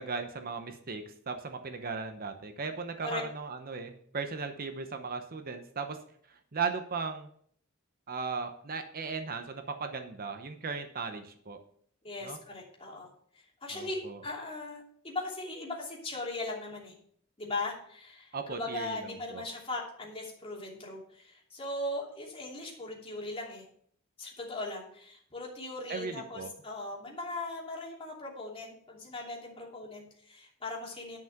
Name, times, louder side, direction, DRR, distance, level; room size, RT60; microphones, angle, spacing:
voice 1, 0.0-6.0 6.3-7.3 8.1-11.6 12.2-12.4 13.7-14.2 18.3-19.4 25.9-26.5, right 4 dB, 45° right, 7 dB, 0.8 m, -37 dB
voice 2, 12.0-13.1 13.6-16.9 17.4-23.6 24.2-31.2, left 2 dB, 25° left, -2 dB, 2.9 m, -39 dB
10.5 x 5.8 x 5.8 m, 0.62 s
head